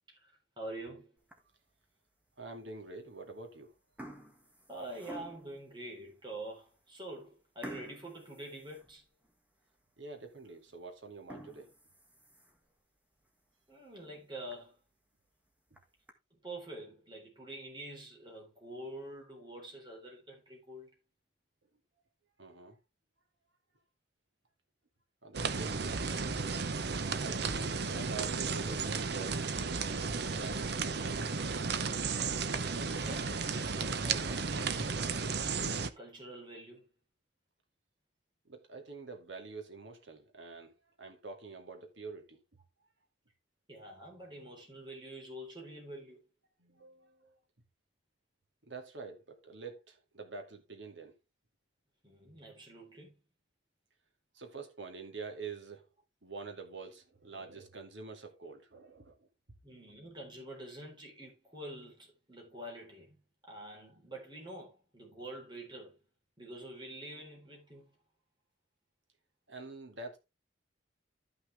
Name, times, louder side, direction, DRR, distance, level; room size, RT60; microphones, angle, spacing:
voice 1, 0.1-1.1 4.7-9.0 13.7-14.8 16.3-20.9 32.7-34.9 36.0-36.9 43.7-46.2 52.0-53.1 59.6-63.2 63.5-66.0 66.4-67.9, right 1 dB, 25° right, 4.1 m, -46 dB
sound 1, 1.2-1.7 2.3-2.4 3.2-3.5 3.8-5.6 6.2-6.3 6.7-6.8 7.6-9.4 9.8-9.9 10.4-10.5 11.1-12.7 13.2-13.3 13.7-13.8 14.1-14.2 14.5-14.6 15.5-16.1, equal, 10° right, 1.6 m, -50 dB
voice 2, 2.4-3.7 10.0-11.7 22.4-22.8 25.2-25.8 26.0-26.2 27.2-30.0 30.4-31.4 38.5-42.4 46.6-47.3 48.6-51.1 54.3-55.9 56.2-59.3 69.5-70.2, right 4 dB, 80° right, 2.3 m, -46 dB
sound 2, 25.3-35.9, right 4 dB, 60° right, 0.8 m, -34 dB
13.0 x 6.0 x 3.4 m
head